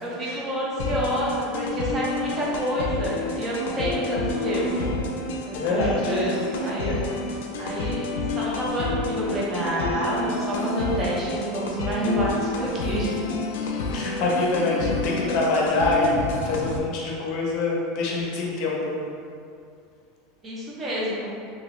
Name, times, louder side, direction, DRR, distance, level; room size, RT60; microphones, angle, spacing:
voice 1, 0.0-4.9 5.5-6.9 7.6-13.1 20.4-21.3, equal, 20° right, -6 dB, 0.7 m, -28 dB
sound 1, 0.8-16.8, left 2 dB, 85° left, 0.4 m, -29 dB
voice 2, 5.5-6.1 6.9-7.1 8.4-8.7 13.5-19.0, left 2 dB, 50° left, -3 dB, 0.7 m, -26 dB
3.0 x 2.7 x 3.0 m, 2.4 s
supercardioid pair, 165°, 0 cm